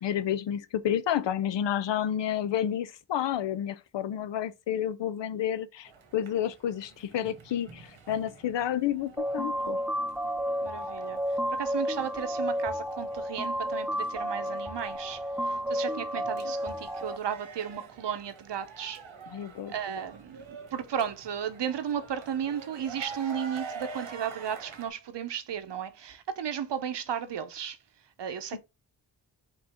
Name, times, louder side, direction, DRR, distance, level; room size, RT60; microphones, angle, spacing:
voice 1, 0.0-9.8 19.3-19.7, left 10 dB, 70° left, 0.6 m, -30 dB
sound 1, 5.9-24.9, right 4 dB, 85° right, 1.3 m, -47 dB
sound 2, 9.2-17.2, equal, 5° right, 0.3 m, -31 dB
voice 2, 10.6-19.0 19.7-27.8 28.2-28.6, right 8 dB, 65° right, 0.8 m, -34 dB
5.2 x 2.7 x 3.5 m
cardioid pair, 60°, 46 cm